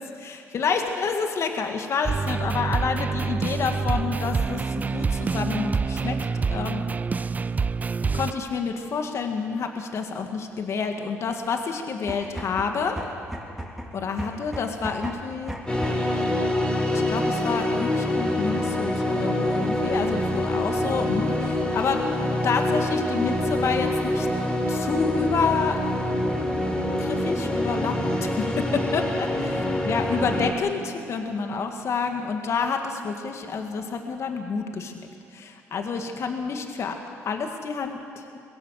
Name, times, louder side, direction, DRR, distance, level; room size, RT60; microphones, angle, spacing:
voice 1, 0.0-6.9 8.0-13.0 13.9-15.5 16.9-22.0 22.4-24.3 24.7-25.8 27.0-37.0 37.2-38.3, left 5 dB, 55° left, 4 dB, 2.1 m, -29 dB
sound 1, 2.1-8.3, right 4 dB, 30° right, 0.4 m, -26 dB
sound 2, 11.9-16.2, right 1 dB, 5° right, 3.4 m, -36 dB
sound 3, 15.7-30.5, left 1 dB, 15° left, 3.5 m, -25 dB
21.5 x 16.5 x 7.7 m, 2.4 s
supercardioid pair, 80°, 6 cm